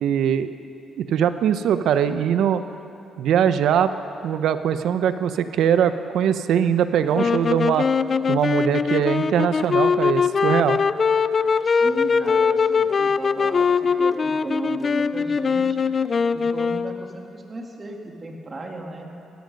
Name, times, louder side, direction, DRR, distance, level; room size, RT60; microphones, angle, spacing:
voice 1, 0.0-0.5 1.0-2.6 3.2-3.9 4.2-7.9 8.3-10.8, right 9 dB, 75° right, 11 dB, 0.7 m, -21 dB
sound 1, 7.1-17.1, left 5 dB, 40° left, 0.4 m, -21 dB
voice 2, 11.4-15.8 16.3-19.1, right 2 dB, 30° right, 2 dB, 2.1 m, -34 dB
17.0 x 14.5 x 5.3 m, 2.9 s
cardioid pair, 90°, 0 cm